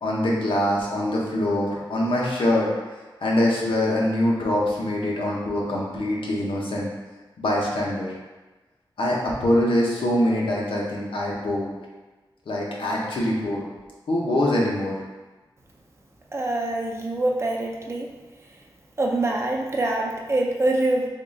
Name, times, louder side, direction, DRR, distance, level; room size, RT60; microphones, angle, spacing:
voice 1, 0.0-2.7 3.2-6.9 7.4-8.1 9.0-11.7 12.5-13.7 14.1-14.9, left 1 dB, 85° left, -3 dB, 0.8 m, -24 dB
voice 2, 16.3-18.1 19.0-21.1, right 2 dB, 30° right, -1 dB, 0.5 m, -24 dB
3.6 x 2.4 x 3.8 m, 1.2 s
wide cardioid pair, 110°, 9 cm